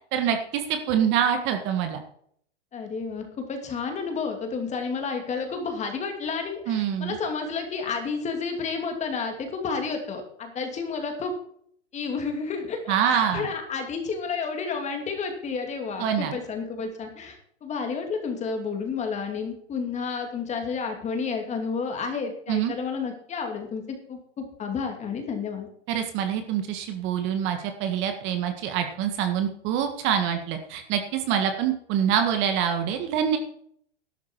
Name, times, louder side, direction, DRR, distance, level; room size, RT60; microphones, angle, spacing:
voice 1, 0.1-2.0 6.7-7.2 12.9-13.5 16.0-16.4 22.5-22.7 25.9-33.4, right 8 dB, 30° right, 6 dB, 1.7 m, -25 dB
voice 2, 2.7-11.3 11.9-25.7, left 5 dB, 20° left, 4 dB, 2.7 m, -31 dB
12.0 x 12.0 x 4.7 m, 0.65 s
hypercardioid pair, 135°, 36 cm